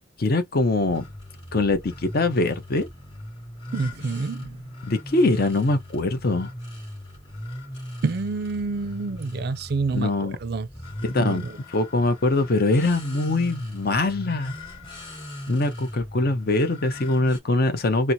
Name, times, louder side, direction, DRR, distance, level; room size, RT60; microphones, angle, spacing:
voice 1, 0.2-1.0 1.5-2.9 4.8-6.5 9.9-10.4 11.1-11.4 11.7-14.5 15.5-18.1, left 2 dB, 50° left, 0.6 m, -23 dB
sound 1, 0.7-17.4, left 1 dB, 30° left, 2.7 m, -39 dB
voice 2, 3.7-4.6 8.0-10.7 11.2-11.6, right 4 dB, 55° right, 0.4 m, -28 dB
4.3 x 2.0 x 2.6 m
head